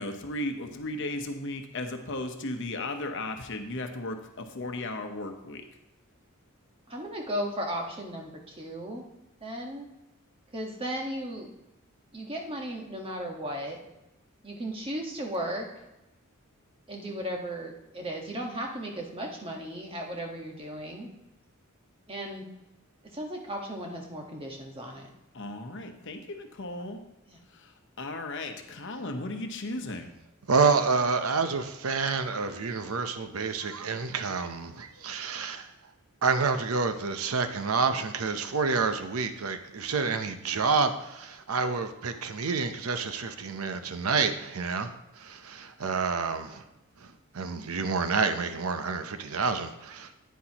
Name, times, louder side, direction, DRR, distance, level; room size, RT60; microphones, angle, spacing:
voice 1, 0.0-5.6 25.3-27.0 27.6-27.7 28.0-30.2, left 2 dB, 60° left, 1.0 m, -35 dB
voice 2, 6.9-9.0 9.4-9.9 10.5-11.5 12.1-13.8 14.4-15.7 16.9-21.1 22.1-22.5 23.0-25.1 27.3-27.4, equal, 25° right, 1.4 m, -36 dB
voice 3, 30.5-35.7 36.2-46.6 47.0-50.1, right 4 dB, 90° right, 0.8 m, -28 dB
10.0 x 9.3 x 3.0 m
head